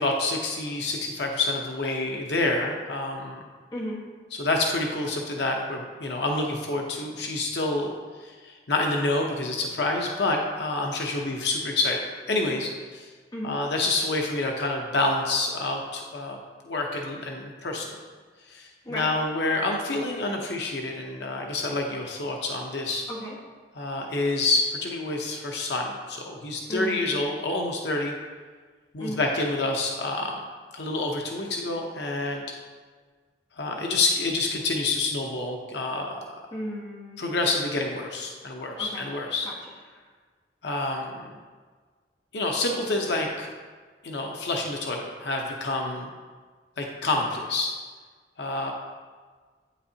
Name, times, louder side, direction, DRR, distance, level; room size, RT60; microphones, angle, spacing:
voice 1, 0.0-3.4 4.3-7.9 8.2-13.1 13.4-16.4 16.6-17.9 18.5-23.1 23.8-28.1 28.9-30.4 30.7-32.4 33.6-36.2 37.2-39.5 40.6-41.1 42.3-43.5 44.0-46.1 46.8-47.7 48.4-48.7, left 2 dB, 75° left, 1 dB, 0.8 m, -28 dB
voice 2, 3.7-4.0 13.3-13.5 18.8-19.1 23.1-23.4 26.7-27.1 29.0-29.2 36.5-37.3 38.8-39.0 39.4-39.6, equal, 25° left, -4 dB, 1.4 m, -34 dB
8.7 x 7.1 x 2.8 m, 1.5 s
head